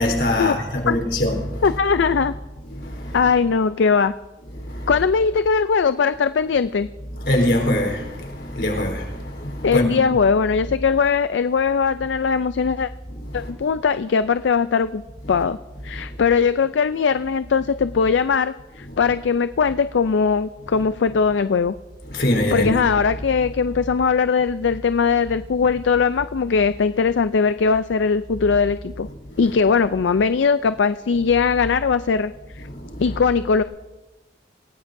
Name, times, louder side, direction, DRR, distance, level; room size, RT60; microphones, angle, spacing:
voice 1, 0.0-1.6 2.7-3.2 4.6-4.9 7.2-9.9 13.3-13.5 16.0-16.1 22.1-22.7 32.7-33.0, left 1 dB, 65° left, 4.0 m, -23 dB
voice 2, 1.6-2.3 3.1-4.1 4.9-6.9 9.6-12.9 13.3-15.0 15.3-15.6 15.8-21.7 22.5-29.1 29.4-32.7 33.0-33.6, left 5 dB, 85° left, 0.4 m, -20 dB
26.5 x 17.5 x 2.6 m
head